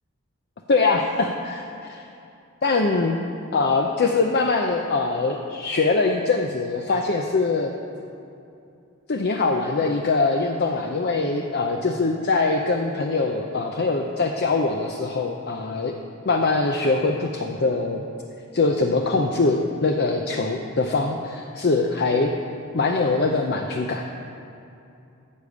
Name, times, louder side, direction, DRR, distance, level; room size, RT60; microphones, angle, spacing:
voice 1, 0.7-2.0 2.6-3.2 3.5-7.7 9.1-15.9 16.3-18.0 18.5-22.3 22.7-24.0, left 3 dB, 50° left, 3 dB, 0.6 m, -23 dB
13.5 x 5.0 x 8.1 m, 2.6 s
head